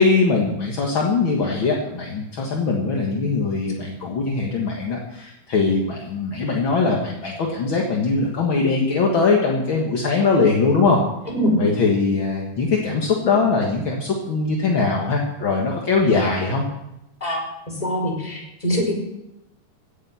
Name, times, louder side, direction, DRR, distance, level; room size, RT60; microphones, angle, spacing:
voice 1, 0.0-11.0 11.6-16.6, left 4 dB, 50° left, -1 dB, 1.6 m, -21 dB
voice 2, 17.8-18.9, equal, 10° left, -2 dB, 4.8 m, -23 dB
16.5 x 9.8 x 5.7 m, 0.89 s
omnidirectional pair, 4.4 m